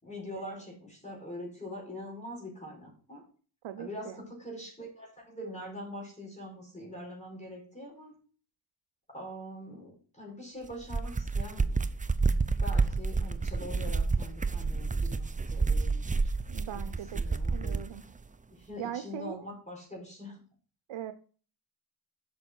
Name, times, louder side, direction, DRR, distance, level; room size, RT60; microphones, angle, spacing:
voice 1, 0.0-3.2 3.8-8.2 9.1-11.8 12.5-16.3 16.7-17.8 18.5-20.4, left 1 dB, 15° left, -2 dB, 4.8 m, -43 dB
voice 2, 3.6-4.2 16.5-17.2 17.5-18.0 18.8-19.5 20.9-21.1, right 11 dB, 85° right, 9 dB, 0.8 m, -40 dB
sound 1, 10.7-17.9, right 4 dB, 15° right, 0.6 m, -29 dB
8.6 x 6.4 x 4.5 m, 0.40 s
cardioid pair, 80°, 46 cm